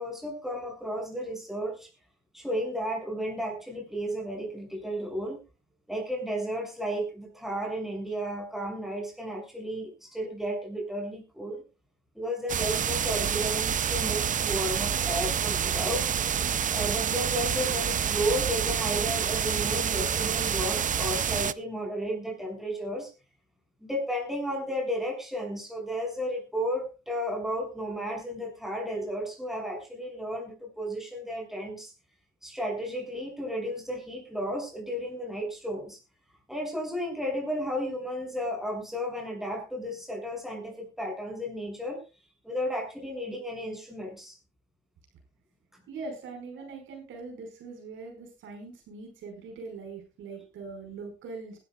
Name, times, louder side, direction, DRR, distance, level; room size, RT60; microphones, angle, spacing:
voice 1, 0.0-1.9 2.3-5.4 5.9-11.6 12.1-16.1 16.7-23.1 23.8-31.9 32.4-36.0 36.5-42.0 42.4-44.3 45.7-45.8, equal, ahead, 2 dB, 6.5 m, -33 dB
sound 1, 12.5-21.5, right 8 dB, 40° right, 0.6 m, -28 dB
voice 2, 45.9-51.6, right 4 dB, 80° right, 4 dB, 5.1 m, -42 dB
20.5 x 12.5 x 2.3 m, 0.30 s
cardioid pair, 90°, 20 cm